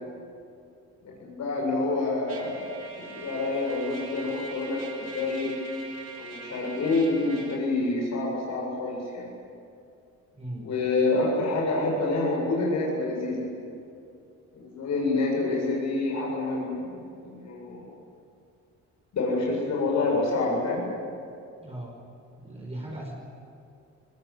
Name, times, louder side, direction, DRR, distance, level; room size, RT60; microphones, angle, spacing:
voice 1, 1.2-2.7 3.0-5.5 6.2-9.3 10.6-13.5 14.5-16.8 17.2-17.9 19.1-20.8, left 2 dB, 65° left, -2 dB, 7.9 m, -27 dB
Trumpet, 2.3-7.6, right 3 dB, 55° right, 5.8 m, -42 dB
voice 2, 10.3-10.7 21.6-22.0 22.4-23.1, right 1 dB, 20° right, -3 dB, 5.7 m, -38 dB
22.5 x 20.5 x 9.8 m, 2.5 s
cardioid pair, 90°, 30 cm